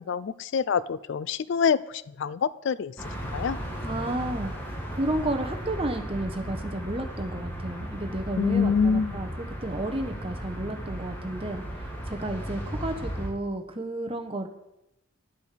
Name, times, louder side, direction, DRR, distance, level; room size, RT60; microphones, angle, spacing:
voice 1, 0.0-1.8 2.2-2.9 3.3-3.6 8.4-9.2, left 6 dB, 60° left, 18 dB, 0.3 m, -25 dB
sound 1, 3.0-13.3, equal, 10° left, 1.9 m, -35 dB
voice 2, 3.8-4.5 4.9-11.6 12.1-14.5, right 1 dB, 25° right, 6 dB, 1.1 m, -32 dB
10.5 x 8.1 x 6.6 m, 0.87 s
head